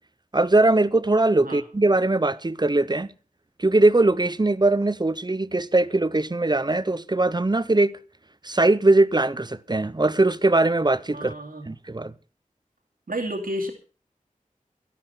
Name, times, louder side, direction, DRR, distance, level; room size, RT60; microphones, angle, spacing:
voice 1, 0.3-3.1 3.6-7.9 8.4-11.3 11.7-12.1, right 2 dB, 30° right, 0.8 m, -21 dB
voice 2, 11.1-11.7 13.1-13.7, equal, 90° right, 2.4 m, -30 dB
12.5 x 12.0 x 5.6 m
wide cardioid pair, 50°, 14 cm